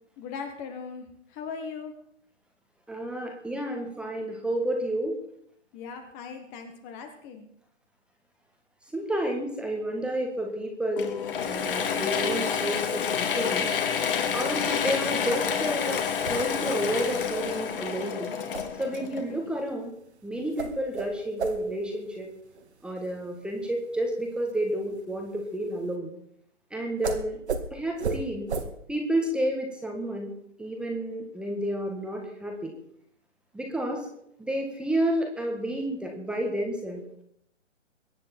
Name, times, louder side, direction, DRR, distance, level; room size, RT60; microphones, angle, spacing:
voice 1, 0.2-1.9 5.7-7.5, left 5 dB, 20° left, 6 dB, 1.4 m, -39 dB
voice 2, 2.9-5.2 8.9-13.7 14.3-18.4 18.8-19.9 20.2-22.3 22.8-26.1 26.7-27.4 27.7-28.5 28.9-30.3 30.6-32.7 33.5-34.1 34.4-37.0, right 1 dB, 5° right, 2 dB, 1.5 m, -30 dB
Mechanisms / Drill, 11.0-19.6, left 7 dB, 45° left, 2.2 m, -29 dB
sound 1, 16.1-25.9 27.0-27.2 27.5-27.6 28.0-28.2 28.5-28.6, right 5 dB, 60° right, 2.2 m, -37 dB
23.0 x 9.6 x 4.5 m, 0.71 s
figure-of-eight pair, 140°, 37 cm